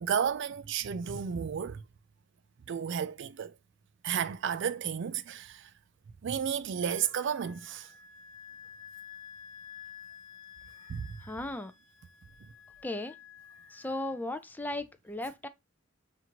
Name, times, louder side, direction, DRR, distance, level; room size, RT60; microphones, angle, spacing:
voice 1, 0.0-1.8 2.7-3.5 4.0-5.6 6.2-7.9 10.9-11.1, right 8 dB, 65° right, 0.4 m, -32 dB
Wind instrument woodwind instrument, 6.8-14.2, left 7 dB, 80° left, 0.6 m, -51 dB
voice 2, 11.2-11.7 12.8-13.1 13.7-15.5, left 2 dB, 10° left, 0.4 m, -36 dB
5.8 x 2.5 x 2.8 m
head